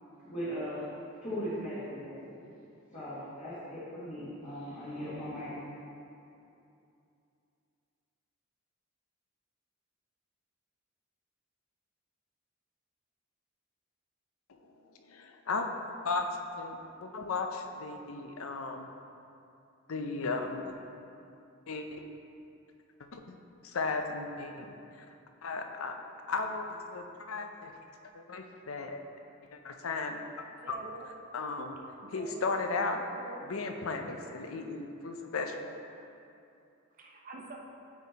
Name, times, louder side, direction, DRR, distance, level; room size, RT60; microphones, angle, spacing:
voice 1, 0.2-0.9 1.2-2.5 2.9-5.5, equal, 35° left, -12 dB, 1.7 m, -38 dB
voice 2, 15.1-15.7 16.0-16.3 16.6-18.9 19.9-20.7 21.7-22.0 23.0-23.4 23.6-24.7 25.4-26.0 26.3-27.7 28.1-29.0 29.5-30.2 30.7-30.8 31.3-31.8 32.1-33.0 33.4-35.7, left 3 dB, 85° left, 5 dB, 0.6 m, -35 dB
voice 3, 30.6-31.1 32.0-32.5 33.1-33.4 37.0-37.6, right 3 dB, 40° right, 1 dB, 0.8 m, -46 dB
8.7 x 4.3 x 4.1 m, 2.7 s
head